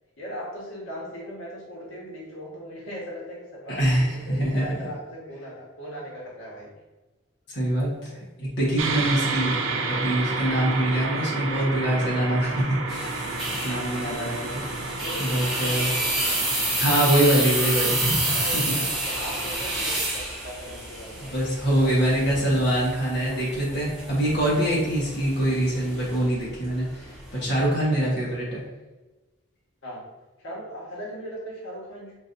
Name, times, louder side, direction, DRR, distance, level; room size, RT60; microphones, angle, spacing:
voice 1, 0.2-6.7 13.9-14.0 15.0-16.4 18.2-22.1 29.8-30.0 30.4-32.2, equal, 90° left, -5 dB, 1.3 m, -39 dB
voice 2, 3.7-4.8 7.5-9.6 9.9-13.3 13.6-14.6 15.2-15.9 16.8-18.7 21.2-28.6, right 1 dB, 55° left, -6 dB, 1.2 m, -24 dB
sound 1, 8.8-20.0, right 3 dB, 85° right, 0.5 m, -31 dB
sound 2, 12.9-27.6, right 1 dB, ahead, 1.3 m, -29 dB
6.1 x 2.7 x 2.6 m, 1.2 s
head